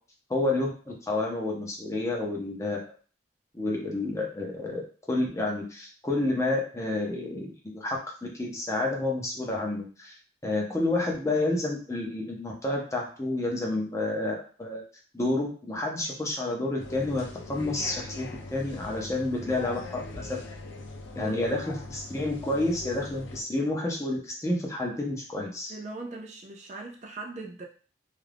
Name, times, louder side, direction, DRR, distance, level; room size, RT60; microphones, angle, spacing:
voice 1, 0.3-2.9 3.5-4.8 5.1-8.0 8.3-10.1 10.4-14.8 15.1-20.4 21.2-25.7, left 2 dB, 15° left, -1 dB, 0.5 m, -29 dB
sound 1, 16.8-23.4, left 2 dB, 85° left, 0.5 m, -41 dB
voice 2, 21.1-21.4 25.7-27.6, right 3 dB, 40° right, 1 dB, 0.4 m, -40 dB
2.4 x 2.2 x 3.3 m, 0.39 s
head